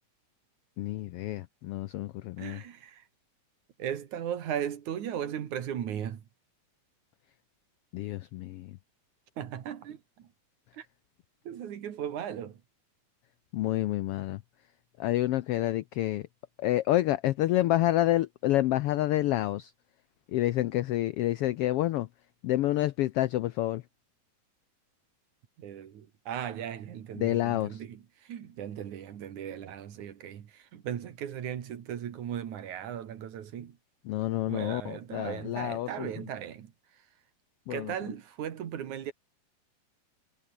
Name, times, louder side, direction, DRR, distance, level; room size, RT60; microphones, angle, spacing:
voice 1, 0.8-2.6 7.9-8.8 13.5-14.4 15.0-16.3 16.6-19.7 20.3-22.1 22.4-23.8 27.2-27.8 34.1-36.1 37.7-37.9, left 15 dB, 85° left, 1.3 m, -28 dB
voice 2, 2.4-3.0 3.8-6.2 9.4-10.3 10.7-10.9 11.4-12.6 25.6-33.8 34.5-37.1 37.7-39.1, right 9 dB, 80° right, 3.3 m, -37 dB
omnidirectional pair, 3.4 m